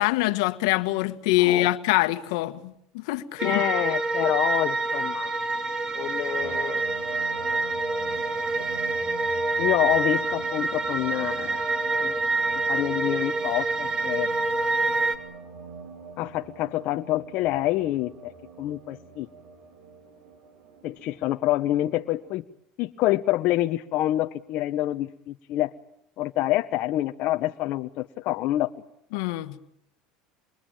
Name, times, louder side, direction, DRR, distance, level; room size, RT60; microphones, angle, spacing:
voice 1, 0.0-3.5 29.1-29.6, left 17 dB, 80° left, 1.5 m, -24 dB
voice 2, 1.4-1.7 3.4-5.3 5.9-6.8 9.6-11.6 12.0-12.2 12.7-14.3 16.2-18.3 18.6-19.3 20.8-22.4 22.8-25.7 26.2-28.7, left 15 dB, 60° left, 1.0 m, -27 dB
sound 1, 3.4-15.2, right 3 dB, 30° right, 2.9 m, -27 dB
sound 2, 6.4-22.3, right 5 dB, 75° right, 5.2 m, -43 dB
27.0 x 22.5 x 9.0 m
supercardioid pair, 110°, 3 cm